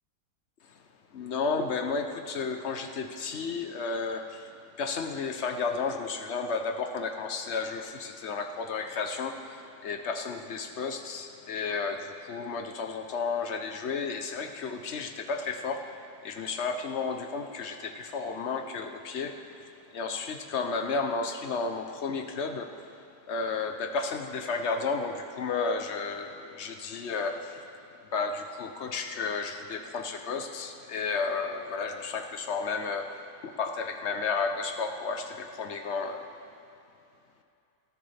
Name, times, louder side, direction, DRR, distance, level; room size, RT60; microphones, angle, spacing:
voice 1, 1.1-27.9 28.1-36.3, left 4 dB, 50° left, 5 dB, 0.9 m, -33 dB
18.5 x 13.5 x 3.4 m, 2.6 s
omnidirectional pair, 1.8 m